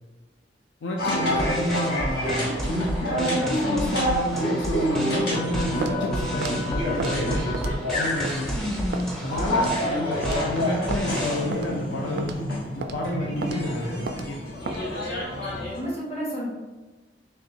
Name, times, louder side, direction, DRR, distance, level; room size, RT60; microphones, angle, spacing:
voice 1, 0.8-2.5 3.0-7.6 7.9-8.5 9.2-12.3 12.7-14.4, left 1 dB, 75° left, -1 dB, 0.5 m, -30 dB
sound 1, 1.0-15.8, equal, 60° left, 1.3 m, -28 dB
sound 2, 1.3-11.4, right 1 dB, ahead, 0.6 m, -33 dB
voice 2, 3.5-3.8 8.5-9.0 15.8-16.5, equal, 35° left, -5 dB, 1.3 m, -31 dB
Walk footsteps, 5.8-6.0 6.4-6.6 7.0-7.2 7.5-7.8 8.2-8.4 8.9-9.1 9.6-9.8 10.2-10.4 10.9-11.0 11.5-11.7 12.2-12.4 12.8-13.0 13.4-13.6 14.1-14.3 14.7-14.8, right 4 dB, 60° right, 0.3 m, -32 dB
4.2 x 3.1 x 2.7 m, 1.2 s
head